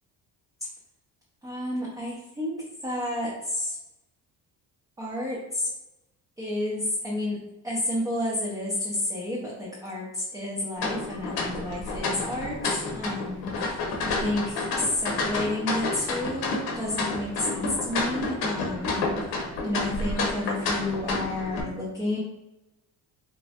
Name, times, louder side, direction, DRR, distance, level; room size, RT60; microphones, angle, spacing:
voice 1, 1.4-3.8 5.0-5.7 6.4-19.1 19.6-22.2, left 1 dB, 10° right, -5 dB, 0.5 m, -31 dB
sound 1, 10.8-21.6, left 3 dB, 80° left, 0.7 m, -30 dB
3.0 x 2.2 x 2.7 m, 0.94 s
cardioid pair, 135°, 37 cm